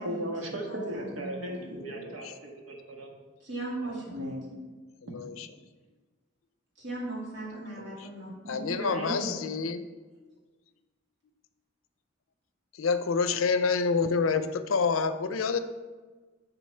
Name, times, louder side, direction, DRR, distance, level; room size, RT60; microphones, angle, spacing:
voice 1, 0.0-3.1 4.1-4.5 8.4-9.4, right 1 dB, 90° right, 0 dB, 1.4 m, -36 dB
voice 2, 0.6-1.8 3.4-4.4 6.8-8.3, right 2 dB, 60° right, -7 dB, 2.5 m, -38 dB
voice 3, 1.8-2.3 5.0-5.5 7.8-8.1 8.5-9.8 12.7-15.6, left 5 dB, 80° left, 10 dB, 0.5 m, -28 dB
7.4 x 3.9 x 5.6 m, 1.3 s
head